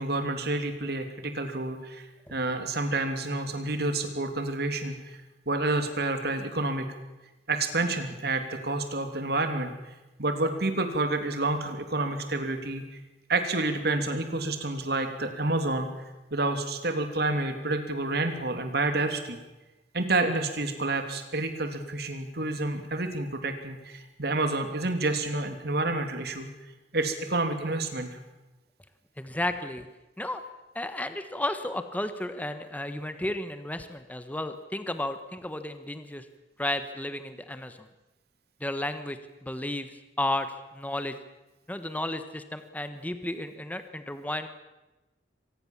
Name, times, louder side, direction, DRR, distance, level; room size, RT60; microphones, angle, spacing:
voice 1, 0.0-5.2 5.5-6.9 7.5-9.7 10.2-12.8 13.3-15.9 16.3-19.4 19.9-26.5 26.9-28.2, right 2 dB, 60° right, 7 dB, 3.1 m, -29 dB
voice 2, 29.2-29.9 30.2-30.4 30.7-36.3 36.6-37.9 38.6-41.2 41.7-44.5, left 1 dB, 10° left, 9 dB, 1.2 m, -33 dB
25.0 x 19.5 x 7.3 m, 1.1 s
head